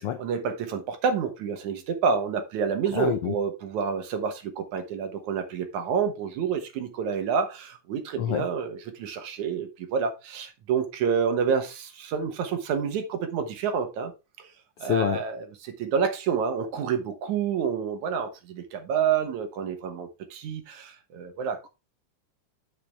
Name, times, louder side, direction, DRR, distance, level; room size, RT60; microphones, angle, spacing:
voice 1, 0.2-14.1 14.4-14.5 14.8-21.7, right 6 dB, 70° right, 2.5 m, -28 dB
voice 2, 2.9-3.3 8.2-8.5 14.8-15.2, left 10 dB, 90° left, 1.2 m, -26 dB
8.4 x 6.9 x 3.5 m
omnidirectional pair, 3.7 m